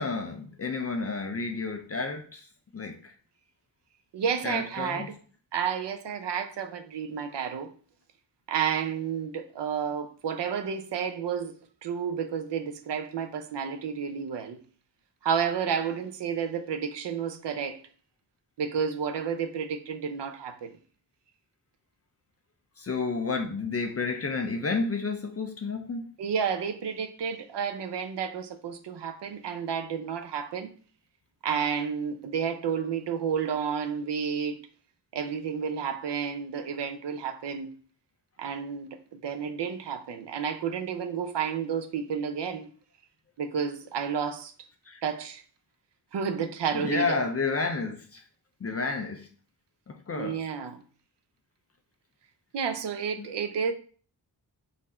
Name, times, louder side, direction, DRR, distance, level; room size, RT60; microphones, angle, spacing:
voice 1, 0.0-2.5 2.7-3.1 4.4-5.1 22.8-26.1 44.9-45.0 46.7-48.2 48.6-49.3 49.9-50.4, left 4 dB, 35° left, 0.5 m, -31 dB
voice 2, 4.1-5.2 5.5-7.7 8.5-11.5 11.8-14.6 15.2-17.8 18.6-20.8 26.2-30.7 31.4-34.6 35.1-37.7 38.4-42.7 43.4-44.5 45.0-45.4 46.1-47.2 50.2-50.8 52.5-53.7, right 7 dB, 75° right, 0.6 m, -31 dB
4.0 x 2.6 x 4.2 m
wide cardioid pair, 165°, 42 cm